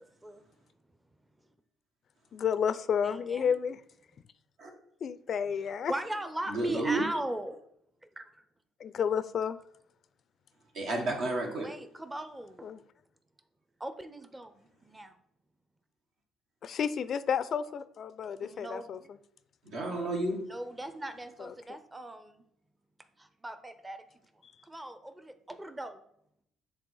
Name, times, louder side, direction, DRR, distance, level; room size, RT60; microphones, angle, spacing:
voice 1, 2.3-3.8 5.0-5.9 8.8-9.6 12.6-12.8 16.6-19.0 21.4-21.5, left 7 dB, 55° left, 0.4 m, -31 dB
voice 2, 3.0-3.5 5.7-7.6 8.2-8.4 11.6-12.7 13.8-15.2 18.4-19.1 20.5-22.4 23.2-24.0 24.6-26.0, right 1 dB, 15° right, 0.6 m, -39 dB
voice 3, 6.5-7.0 10.7-11.7 19.6-20.4, right 2 dB, 70° right, 1.6 m, -31 dB
7.5 x 3.4 x 4.6 m
hypercardioid pair, 55°, 0 cm